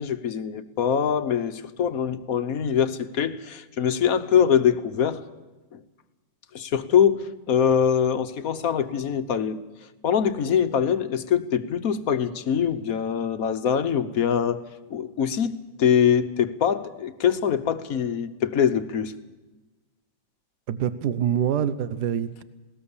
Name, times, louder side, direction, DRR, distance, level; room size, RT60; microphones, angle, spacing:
voice 1, 0.0-5.2 5.7-5.8 6.5-9.6 10.0-14.6 14.9-19.1, left 8 dB, 55° left, 11 dB, 1.4 m, -23 dB
voice 2, 20.7-22.4, right 9 dB, 70° right, 14 dB, 1.4 m, -25 dB
20.0 x 18.5 x 7.2 m, 1.2 s
omnidirectional pair, 1.9 m